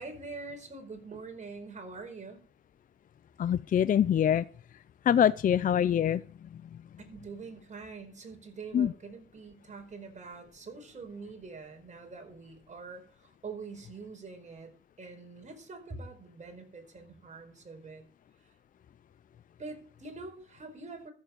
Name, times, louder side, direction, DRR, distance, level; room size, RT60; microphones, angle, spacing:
voice 1, 0.0-2.4 7.0-18.0 18.4-18.5 19.6-21.1, right 4 dB, 35° right, 4 dB, 4.7 m, -45 dB
voice 2, 3.4-4.5 5.0-6.2 8.7-8.9, left 9 dB, 45° left, 17 dB, 0.5 m, -24 dB
14.0 x 7.2 x 6.9 m, 0.43 s
cardioid pair, 90°, 20 cm